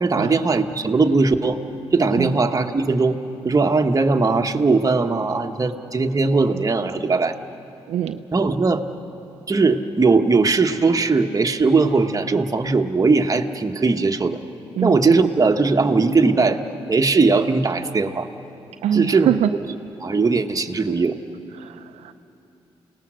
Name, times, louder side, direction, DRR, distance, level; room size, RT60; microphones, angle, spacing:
voice 1, 0.0-1.6 1.9-3.2 3.4-7.3 8.3-8.8 9.5-14.4 14.8-16.6 16.9-18.3 18.9-19.3 20.0-21.2, right 3 dB, 35° right, 5 dB, 1.2 m, -19 dB
voice 2, 7.9-8.2 14.8-15.2 18.8-19.5 21.5-22.1, right 10 dB, 85° right, 8 dB, 0.5 m, -23 dB
29.0 x 18.5 x 6.3 m, 3.0 s
cardioid pair, 60°, 11 cm